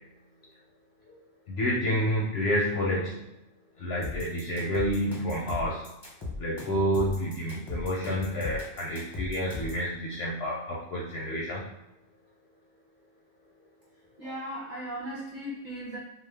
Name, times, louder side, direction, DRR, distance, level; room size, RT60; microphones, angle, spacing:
voice 1, 1.5-3.2 3.8-5.9 6.4-11.6, equal, 65° left, -4 dB, 0.7 m, -29 dB
sound 1, 4.0-9.8, left 2 dB, 25° left, 0.6 m, -38 dB
voice 2, 14.2-16.0, equal, 40° right, -6 dB, 0.7 m, -37 dB
2.3 x 2.3 x 3.3 m, 0.88 s
omnidirectional pair, 1.3 m